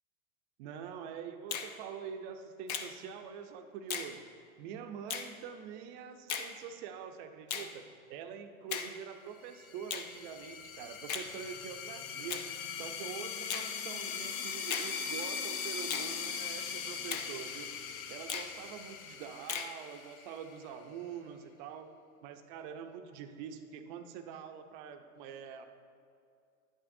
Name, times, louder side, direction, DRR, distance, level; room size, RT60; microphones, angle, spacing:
voice 1, 0.6-4.2 4.6-7.8 8.1-17.7 18.1-21.9 22.2-25.7, right 7 dB, 35° right, 7 dB, 0.5 m, -45 dB
Finger snapping, 1.5-1.7 2.7-2.9 3.9-4.1 5.1-5.3 6.3-6.5 7.5-7.7 8.7-8.9 9.9-10.1 11.1-11.3 12.3-12.5 13.5-13.7 14.7-14.9 15.9-16.1 17.1-17.3 18.3-18.5 19.5-19.7, left 7 dB, 30° left, 0.4 m, -37 dB
sound 1, 9.5-20.8, left 7 dB, 70° left, 0.8 m, -40 dB
10.5 x 8.7 x 2.6 m, 2.4 s
hypercardioid pair, 135°, 44 cm